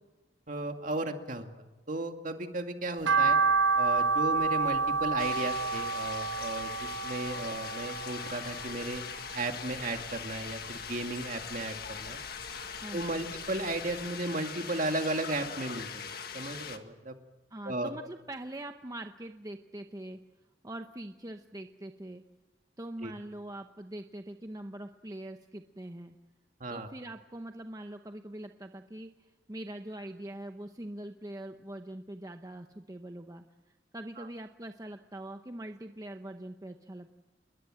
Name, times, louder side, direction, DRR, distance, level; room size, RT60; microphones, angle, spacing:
voice 1, 0.5-1.5 1.9-3.4 3.8-9.0 9.3-12.2 12.9-15.9 16.3-17.1 17.7-17.9 23.0-23.1 26.6-26.9 34.2-34.3, right 2 dB, 45° right, 5 dB, 2.2 m, -35 dB
sound 1, 3.0-9.4 9.7-10.9 11.2-12.6 13.0-13.1 13.6-13.7 13.9-14.0, right 4 dB, 80° right, 0.8 m, -29 dB
sound 2, 5.2-16.8, left 7 dB, 55° left, 1.7 m, -41 dB
voice 2, 12.7-13.4 17.5-20.2 20.6-22.2 22.8-26.2 26.7-33.4 33.9-37.1, right 1 dB, 20° right, 6 dB, 0.8 m, -43 dB
28.0 x 21.5 x 7.7 m, 1.1 s
head